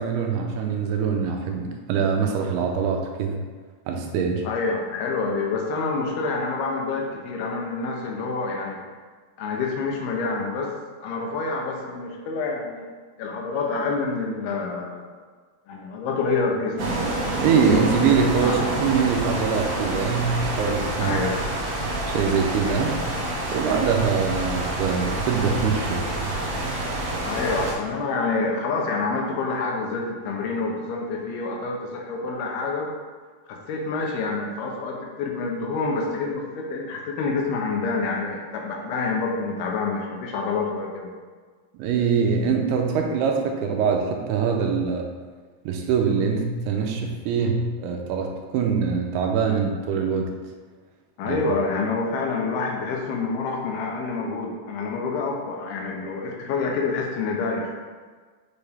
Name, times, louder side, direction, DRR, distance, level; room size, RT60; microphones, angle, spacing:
voice 1, 0.0-3.4 3.9-4.5 17.4-21.2 22.1-23.0 23.5-26.1 41.8-45.1 45.7-50.3 51.3-51.4, right 6 dB, 90° right, 2 dB, 2.6 m, -23 dB
voice 2, 4.4-8.8 9.4-12.9 13.2-15.1 15.7-16.9 18.4-18.6 21.0-21.4 27.2-32.9 33.5-41.1 51.2-57.7, left 4 dB, 80° left, 0 dB, 2.7 m, -27 dB
sound 1, 16.8-27.7, right 1 dB, 65° right, 1.7 m, -27 dB
6.7 x 5.0 x 3.5 m, 1.5 s
omnidirectional pair, 4.6 m